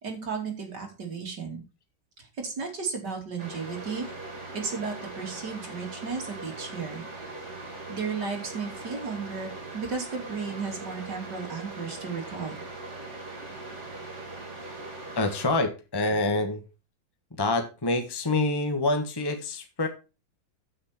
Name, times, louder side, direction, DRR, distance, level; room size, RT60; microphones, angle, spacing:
voice 1, 0.0-1.6 2.2-4.1 4.5-7.0 7.9-12.5, right 5 dB, 60° right, 2 dB, 3.5 m, -34 dB
sound 1, 3.4-15.5, right 2 dB, 35° right, 3.3 m, -40 dB
voice 2, 15.2-16.6 17.4-19.9, left 2 dB, 15° left, 6 dB, 1.3 m, -26 dB
9.7 x 8.6 x 4.3 m, 0.31 s
omnidirectional pair, 2.1 m